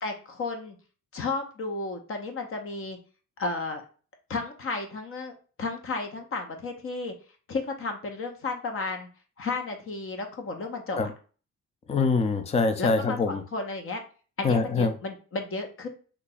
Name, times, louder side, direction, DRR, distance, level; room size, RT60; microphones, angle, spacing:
voice 1, 0.0-0.8 1.1-3.0 3.4-3.8 4.3-5.3 5.6-7.1 7.5-9.1 9.4-11.1 12.8-14.0 14.4-15.9, left 3 dB, 45° left, 4 dB, 0.8 m, -33 dB
voice 2, 11.9-13.4 14.4-14.9, left 4 dB, 20° left, 8 dB, 0.4 m, -24 dB
2.8 x 2.4 x 3.9 m, 0.38 s
cardioid pair, 90°, 30 cm